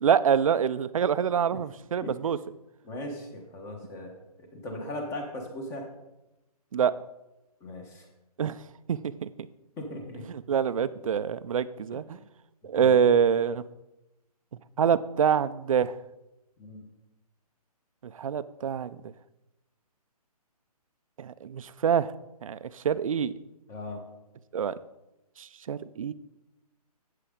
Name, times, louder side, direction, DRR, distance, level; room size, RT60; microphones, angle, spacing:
voice 1, 0.0-2.4 6.7-6.9 8.4-8.6 8.9-9.3 10.5-12.2 12.6-13.6 14.8-15.9 18.0-19.0 21.2-22.1 22.4-23.3 24.5-24.7 25.4-26.1, right 7 dB, 55° right, 15 dB, 0.5 m, -25 dB
voice 2, 2.8-4.1 4.4-5.9 7.6-8.1 9.8-10.3 11.9-12.0 12.7-13.0 16.6-16.8 23.7-24.0, left 1 dB, 15° left, 4 dB, 1.2 m, -38 dB
11.0 x 8.3 x 3.8 m, 0.95 s
hypercardioid pair, 155°, 20 cm